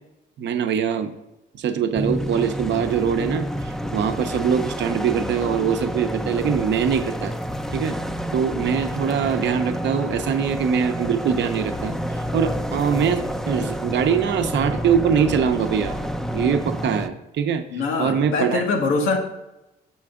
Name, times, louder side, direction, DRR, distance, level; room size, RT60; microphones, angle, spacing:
voice 1, 0.4-1.1 1.5-7.3 7.7-8.0 8.3-12.0 12.3-16.0 16.3-17.6 18.0-18.6, right 7 dB, 65° right, 8 dB, 0.7 m, -23 dB
sound 1, 1.9-17.1, equal, ahead, 0.4 m, -29 dB
voice 2, 17.7-19.2, left 3 dB, 90° left, 3 dB, 1.3 m, -23 dB
6.8 x 6.1 x 3.6 m, 0.94 s
cardioid pair, 90°, 20 cm